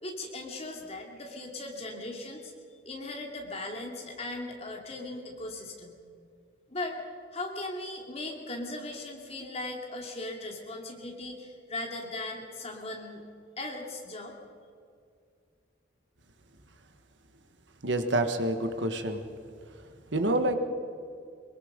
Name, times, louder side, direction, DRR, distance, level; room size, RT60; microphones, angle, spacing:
voice 1, 0.0-2.5 2.8-6.0 6.7-7.0 7.3-13.2 13.6-14.4, left 2 dB, 30° left, 1 dB, 2.8 m, -38 dB
voice 2, 17.8-19.2 20.1-20.6, right 1 dB, 70° right, 7 dB, 1.6 m, -27 dB
23.5 x 22.5 x 5.3 m, 2.3 s
head